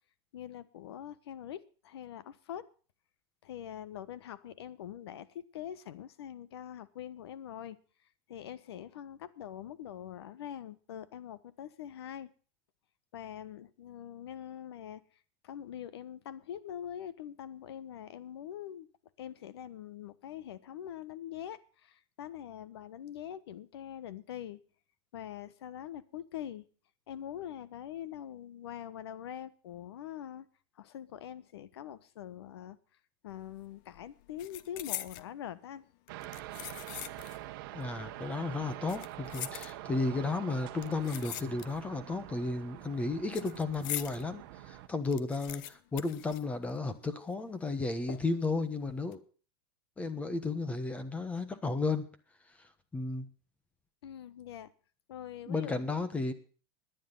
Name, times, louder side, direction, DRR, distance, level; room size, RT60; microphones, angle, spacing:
voice 1, 0.3-2.6 3.4-7.8 8.3-12.3 13.1-15.0 15.4-18.9 19.2-24.6 25.1-26.6 27.1-30.5 30.8-32.8 33.2-35.9 54.0-54.7 55.1-55.9, left 10 dB, 90° left, 16 dB, 1.3 m, -44 dB
sound 1, 33.3-33.6 33.9-35.3 36.1-37.5 37.8-37.9 38.7-40.1 40.8-42.0 42.3-44.2 44.6-44.7 44.9-47.0 47.3-47.4 48.1-48.5 48.9-49.1, left 14 dB, 50° left, 0.8 m, -43 dB
sound 2, 36.1-44.9, right 15 dB, 55° right, 1.2 m, -45 dB
voice 2, 37.7-49.2 50.0-52.1 52.9-53.3 55.5-56.3, left 3 dB, 10° left, 11 dB, 1.3 m, -33 dB
19.0 x 10.0 x 4.0 m, 0.39 s
supercardioid pair, 160°, 13 cm